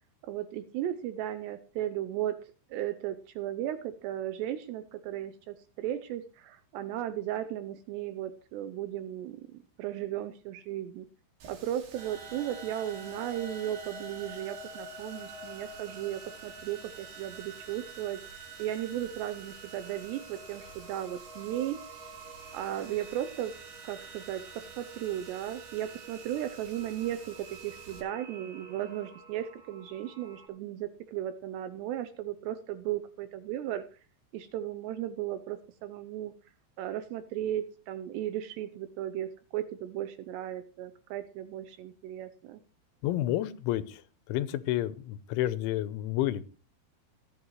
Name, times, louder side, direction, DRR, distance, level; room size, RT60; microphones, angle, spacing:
voice 1, 0.2-11.1 11.5-18.2 18.6-21.8 22.5-23.6 23.8-34.0 34.3-36.3 36.8-42.6, right 12 dB, 80° right, 11 dB, 2.6 m, -36 dB
Water tap faucet, 11.4-28.0, right 5 dB, 65° right, 4.3 m, -53 dB
sound 1, 11.9-30.5, right 3 dB, 30° right, 4.3 m, -47 dB
voice 2, 43.0-44.0 44.3-46.5, left 13 dB, 85° left, 14 dB, 3.1 m, -30 dB
18.5 x 8.9 x 3.1 m, 0.37 s
omnidirectional pair, 5.5 m